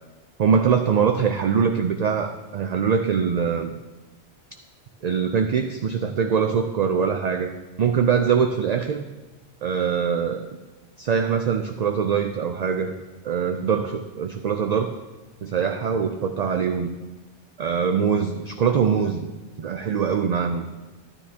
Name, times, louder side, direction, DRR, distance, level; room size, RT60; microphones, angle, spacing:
voice 1, 0.4-3.7 5.0-7.5 7.8-9.1 9.6-10.5 11.0-12.9 13.2-14.9 15.4-16.9 17.6-19.3 19.6-20.7, right 6 dB, 60° right, 6 dB, 0.4 m, -23 dB
12.0 x 9.9 x 2.8 m, 1.2 s
omnidirectional pair, 1.2 m